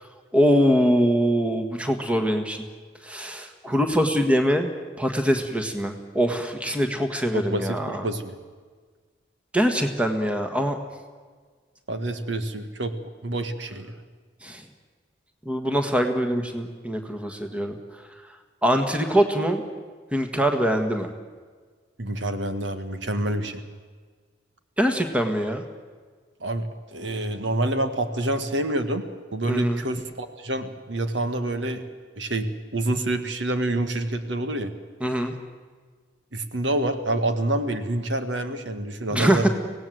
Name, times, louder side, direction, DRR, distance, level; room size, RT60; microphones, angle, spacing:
voice 1, 0.3-2.6 3.0-4.7 5.0-8.0 9.5-10.8 14.4-14.6 15.5-17.7 18.6-19.6 20.1-21.1 24.8-25.6 29.5-29.8 35.0-35.3 39.1-39.5, equal, 5° right, 5 dB, 1.7 m, -23 dB
voice 2, 7.3-8.4 11.9-12.9 13.2-14.0 22.0-23.6 26.4-29.1 29.3-31.8 32.2-34.7 36.3-39.5, right 1 dB, 80° right, 8 dB, 1.7 m, -27 dB
24.5 x 18.0 x 7.9 m, 1.5 s
head